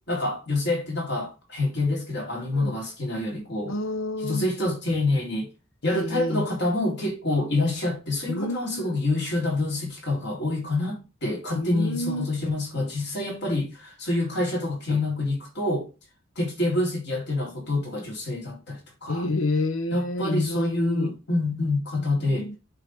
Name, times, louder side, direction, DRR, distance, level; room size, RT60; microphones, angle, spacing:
voice 1, 0.1-3.7 4.2-5.5 5.8-15.9 16.4-19.3 19.9-22.5, left 2 dB, 55° left, 3.4 m, -27 dB
voice 2, 3.7-4.5 5.8-6.5 8.3-9.0 11.5-12.2 19.1-21.1 21.9-22.6, left 2 dB, 80° left, 1.0 m, -29 dB
7.9 x 3.9 x 6.0 m
head